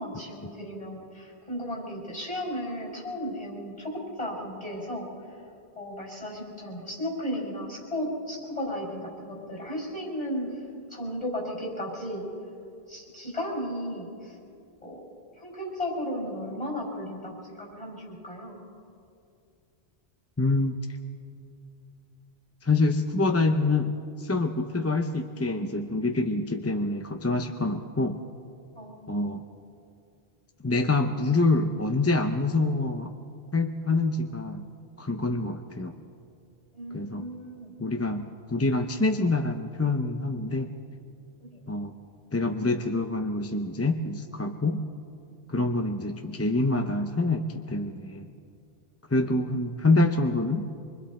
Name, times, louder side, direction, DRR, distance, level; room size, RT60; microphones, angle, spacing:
voice 1, 0.0-5.1 5.7-10.5 10.9-12.3 12.9-14.4 14.8-15.0 15.4-18.6 28.7-29.2 36.7-37.7, equal, 35° left, -2 dB, 6.3 m, -35 dB
voice 2, 20.4-20.8 22.6-28.2 29.1-29.4 30.6-33.1 33.5-34.7 35.0-35.9 36.9-37.3 37.8-40.7 41.7-41.9 42.3-44.8 45.5-48.3 49.1-50.7, left 2 dB, 15° left, 5 dB, 0.6 m, -26 dB
25.5 x 24.5 x 4.3 m, 2.4 s
omnidirectional pair, 1.1 m